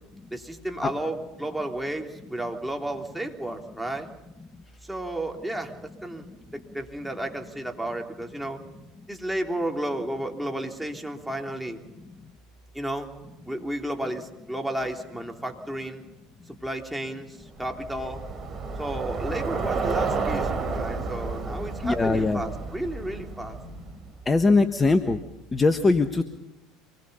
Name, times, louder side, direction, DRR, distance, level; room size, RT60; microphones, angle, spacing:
voice 1, 0.3-4.1 4.8-6.3 6.5-8.6 9.1-11.8 12.7-13.1 13.5-16.0 16.5-18.3 18.8-23.6, right 1 dB, 5° right, 2 dB, 3.4 m, -32 dB
Bicycle, 17.6-24.1, right 4 dB, 35° right, 4.3 m, -31 dB
voice 2, 21.8-22.4 24.2-25.2 25.5-26.2, left 3 dB, 20° left, 8 dB, 1.4 m, -21 dB
26.0 x 21.0 x 5.6 m, 0.95 s
hypercardioid pair, 75°, 0 cm